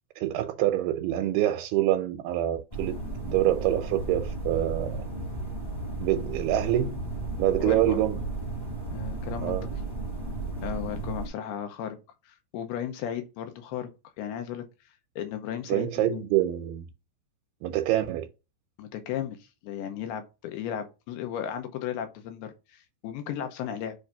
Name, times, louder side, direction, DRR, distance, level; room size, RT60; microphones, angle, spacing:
voice 1, 0.2-2.9 3.2-5.0 6.0-7.0 7.4-8.2 9.4-9.7 15.7-16.9 17.6-18.3, right 13 dB, 85° right, 2.5 m, -26 dB
sound 1, 2.7-11.3, right 2 dB, 30° left, 0.6 m, -34 dB
voice 2, 7.6-8.0 8.9-9.6 10.6-12.0 12.3-13.9 14.2-14.6 15.2-16.2 18.8-24.0, left 9 dB, 90° left, 2.7 m, -35 dB
7.3 x 2.6 x 5.6 m
omnidirectional pair, 4.5 m